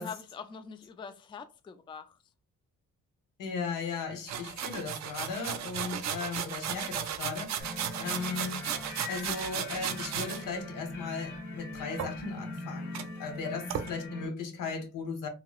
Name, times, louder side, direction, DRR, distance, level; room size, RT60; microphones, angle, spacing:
voice 1, 0.0-2.1, left 6 dB, 15° left, 0.4 m, -43 dB
voice 2, 3.4-8.7 9.1-15.3, left 5 dB, 75° left, 1.0 m, -37 dB
sound 1, 4.3-10.4 12.0-12.6 12.9-13.0 13.7-13.9, right 9 dB, 60° right, 0.5 m, -35 dB
sound 2, 7.6-14.3, left 2 dB, 40° left, 1.5 m, -41 dB
2.9 x 2.9 x 2.3 m
cardioid pair, 80°, 32 cm